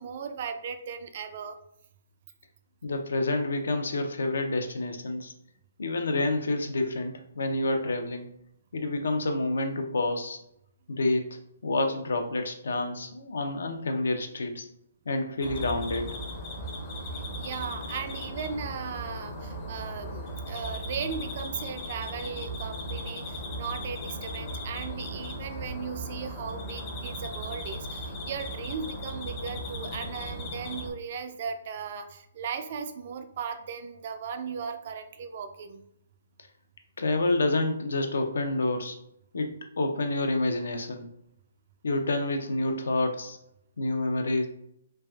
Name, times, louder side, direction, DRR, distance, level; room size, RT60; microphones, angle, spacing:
voice 1, 0.0-1.6 17.1-35.8, right 6 dB, 45° right, 8 dB, 0.3 m, -37 dB
voice 2, 2.8-5.3 5.8-8.3 8.7-10.4 10.9-14.7 15.1-16.2 37.0-39.0 39.3-41.1 41.8-43.4 43.8-44.5, left 2 dB, 75° left, 6 dB, 0.5 m, -28 dB
sound 1, 15.4-30.9, equal, 30° left, 0.6 m, -37 dB
3.3 x 2.4 x 2.2 m, 0.75 s
hypercardioid pair, 150°, 0 cm